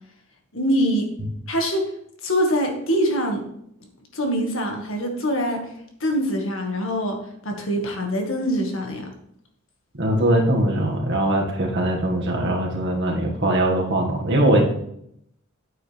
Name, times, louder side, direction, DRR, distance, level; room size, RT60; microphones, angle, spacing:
voice 1, 0.5-1.1 1.5-1.9 2.2-3.4 4.1-5.6 6.0-9.1, equal, 70° left, 3 dB, 1.9 m, -24 dB
voice 2, 9.9-14.6, right 1 dB, 60° right, 0 dB, 2.0 m, -21 dB
9.4 x 8.8 x 3.5 m, 0.73 s
head